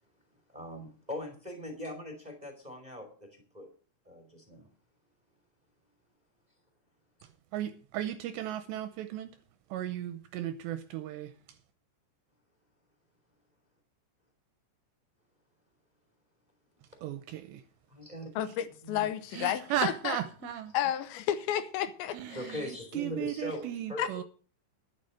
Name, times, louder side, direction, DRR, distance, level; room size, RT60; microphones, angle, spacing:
voice 1, 0.5-3.7 4.0-4.7 17.9-18.3 18.8-19.1 22.3-24.2, left 1 dB, 20° right, 1.2 m, -41 dB
voice 2, 7.5-9.3 9.7-11.3 17.0-17.6 19.3-20.7 22.1-24.2, right 11 dB, 80° right, 2.6 m, -36 dB
voice 3, 18.4-20.2 20.7-22.4 24.0-24.2, left 11 dB, 80° left, 2.9 m, -32 dB
11.0 x 10.0 x 6.4 m
omnidirectional pair, 5.6 m